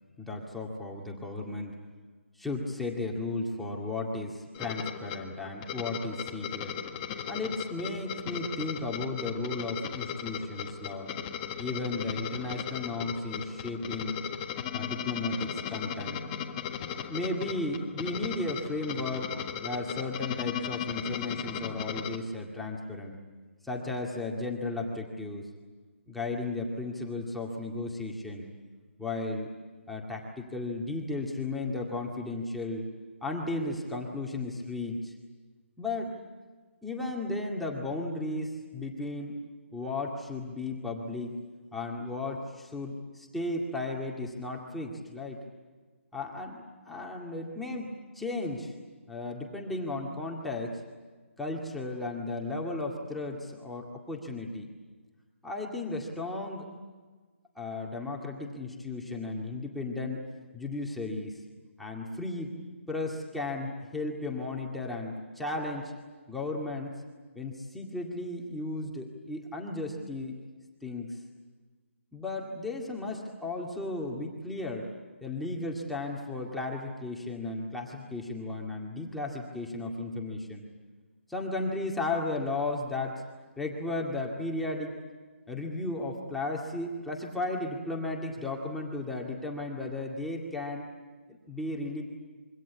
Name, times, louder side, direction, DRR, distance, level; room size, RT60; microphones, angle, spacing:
voice 1, 0.2-1.8 2.4-6.7 7.3-11.1 11.6-14.2 14.7-16.2 17.1-19.3 19.6-23.2 23.6-25.5 26.1-28.5 29.0-29.5 29.9-32.9 33.2-35.1 35.8-36.2 36.8-39.4 39.7-41.4 41.7-45.4 46.1-48.7 49.1-50.8 51.4-54.7 55.4-56.7 57.6-60.2 60.5-61.4 61.8-62.5 62.9-65.9 66.3-66.9 67.4-70.4 70.8-71.2 72.1-74.9 75.2-80.6 81.3-83.2 83.6-85.0 85.5-90.9 91.3-92.0, left 2 dB, ahead, -2 dB, 2.1 m, -35 dB
sound 1, 4.5-22.2, left 8 dB, 20° left, 1.6 m, -37 dB
26.5 x 24.0 x 8.3 m, 1.4 s
hypercardioid pair, 165°, 7 cm